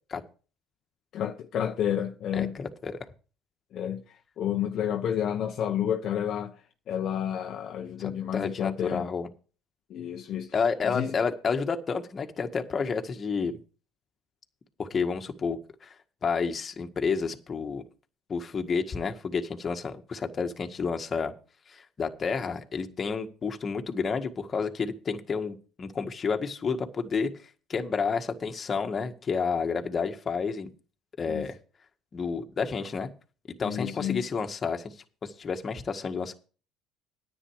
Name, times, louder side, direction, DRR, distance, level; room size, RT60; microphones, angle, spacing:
voice 1, 1.1-2.6 3.7-4.0 4.4-6.6 6.9-9.1 9.9-10.5 10.9-11.2 31.3-31.5 33.6-34.3, left 9 dB, 55° left, 1.0 m, -30 dB
voice 2, 2.3-3.0 8.0-9.3 10.5-13.6 14.8-15.9 16.2-17.8 18.3-21.3 21.7-27.3 27.7-30.7 31.2-31.6 32.1-33.1 33.6-34.8 35.2-36.3, left 5 dB, 35° left, 1.7 m, -30 dB
10.0 x 9.3 x 4.9 m
supercardioid pair, 95°, 0 cm